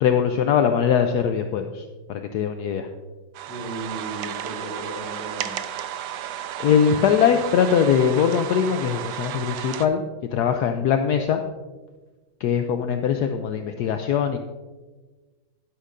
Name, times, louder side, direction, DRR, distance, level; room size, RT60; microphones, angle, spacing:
voice 1, 0.0-2.9 6.6-10.0 10.3-11.4 12.4-14.4, left 8 dB, 70° left, 6 dB, 1.0 m, -21 dB
sound 1, 3.3-9.9, right 11 dB, 85° right, 1.3 m, -33 dB
voice 2, 3.5-5.7, right 2 dB, 10° right, -3 dB, 3.4 m, -36 dB
11.5 x 11.0 x 2.6 m, 1.3 s
omnidirectional pair, 2.0 m